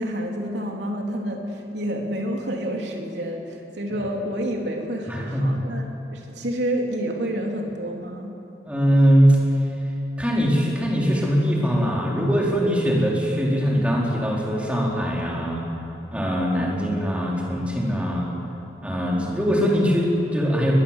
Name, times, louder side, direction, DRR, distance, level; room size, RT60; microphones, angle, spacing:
voice 1, 0.0-8.3, right 1 dB, 70° right, 1 dB, 3.3 m, -29 dB
voice 2, 5.1-5.6 8.6-9.4 10.2-15.6 16.1-18.3 18.8-20.7, equal, 5° right, -3 dB, 3.8 m, -21 dB
21.5 x 21.5 x 7.4 m, 2.8 s
head